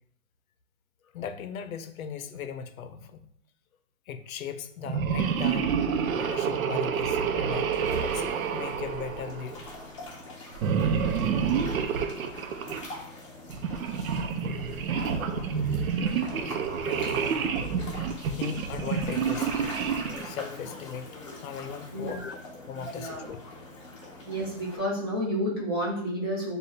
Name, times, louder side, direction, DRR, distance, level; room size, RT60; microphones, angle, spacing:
voice 1, 1.1-3.3 4.1-5.8 6.1-9.7 15.8-15.9 16.2-17.6 18.3-22.4 22.7-23.4, left 7 dB, 80° left, 10 dB, 0.6 m, -39 dB
sound 1, 4.8-9.7 10.5-12.9 13.5-20.3, right 6 dB, 85° right, 0.6 m, -28 dB
sound 2, 7.7-24.8, left 2 dB, 25° left, 0.6 m, -44 dB
voice 2, 21.9-22.3 22.7-23.3 24.3-26.6, equal, 20° right, -6 dB, 0.6 m, -31 dB
6.6 x 2.3 x 2.7 m, 0.68 s
hypercardioid pair, 175°, 41 cm